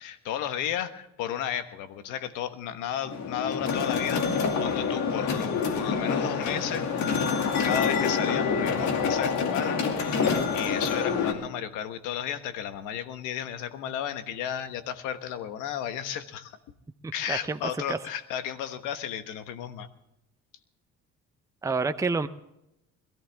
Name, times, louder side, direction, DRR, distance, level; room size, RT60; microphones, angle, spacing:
voice 1, 0.0-6.9 7.5-16.6 17.1-19.9, left 10 dB, 85° left, 10 dB, 1.3 m, -33 dB
sound 1, 3.1-11.3, left 5 dB, 65° left, 2.4 m, -27 dB
voice 2, 17.0-17.6 17.9-18.0 21.6-22.3, right 4 dB, 10° right, 8 dB, 0.7 m, -28 dB
22.0 x 14.0 x 3.5 m, 0.87 s
cardioid pair, 95°, 30 cm